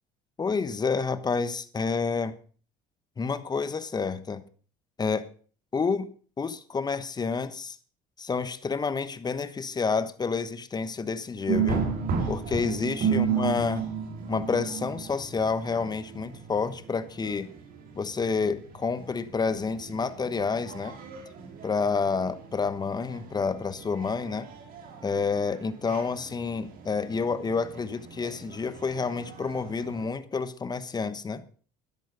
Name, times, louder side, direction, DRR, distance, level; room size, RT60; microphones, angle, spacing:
voice 1, 0.4-2.4 3.2-4.4 5.0-5.3 5.7-6.1 6.4-7.8 8.2-11.8 12.3-13.9 14.3-17.5 17.9-21.0 21.6-24.5 25.0-31.4, left 5 dB, 25° left, 1.2 m, -29 dB
sound 1, 11.5-30.1, right 6 dB, 60° right, 3.6 m, -34 dB
12.5 x 10.5 x 5.2 m
supercardioid pair, 100°, 17 cm